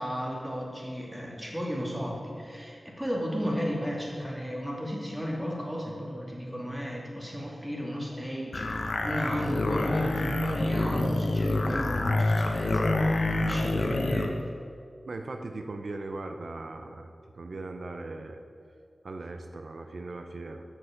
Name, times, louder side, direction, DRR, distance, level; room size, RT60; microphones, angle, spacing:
voice 1, 0.0-14.5, equal, 10° right, -3 dB, 2.3 m, -34 dB
sound 1, 8.5-14.3, left 2 dB, 70° left, 0.9 m, -27 dB
voice 2, 15.1-18.4 19.0-20.6, right 2 dB, 70° right, 5 dB, 0.6 m, -39 dB
7.7 x 6.4 x 7.2 m, 2.3 s
wide cardioid pair, 70°, 0 cm